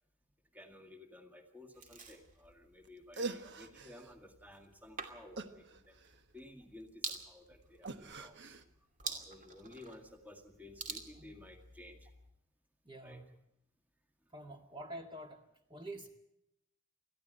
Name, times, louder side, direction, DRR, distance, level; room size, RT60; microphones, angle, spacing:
voice 1, 0.5-6.0 6.3-8.4 9.0-12.1 13.0-13.2 14.5-14.6, left 1 dB, 10° right, 5 dB, 1.9 m, -55 dB
sound 1, 1.7-12.3, right 4 dB, 40° right, 2.6 m, -49 dB
sound 2, 2.8-2.9 3.1-4.1 5.4-6.4 7.8-8.6, right 3 dB, 55° right, 1.3 m, -43 dB
voice 2, 12.9-13.3 14.3-15.4 15.7-16.1, right 1 dB, 25° right, 4 dB, 1.8 m, -46 dB
20.5 x 14.5 x 9.0 m, 0.83 s
head